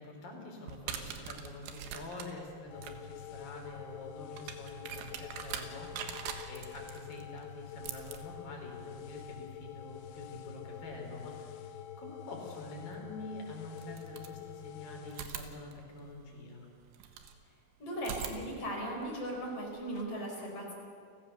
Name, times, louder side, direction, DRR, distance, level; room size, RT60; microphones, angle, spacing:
voice 1, 0.0-16.7, left 2 dB, 55° left, 0 dB, 5.8 m, -47 dB
sound 1, 0.6-11.4 12.9-13.0 13.7-14.7 15.1-17.4 18.0-20.0, right 8 dB, 90° right, 3.7 m, -45 dB
sound 2, 2.7-15.2, left 9 dB, 80° left, 2.9 m, -47 dB
voice 2, 17.8-20.7, right 1 dB, 35° left, -1 dB, 5.6 m, -38 dB
30.0 x 16.5 x 7.0 m, 2.3 s
omnidirectional pair, 4.9 m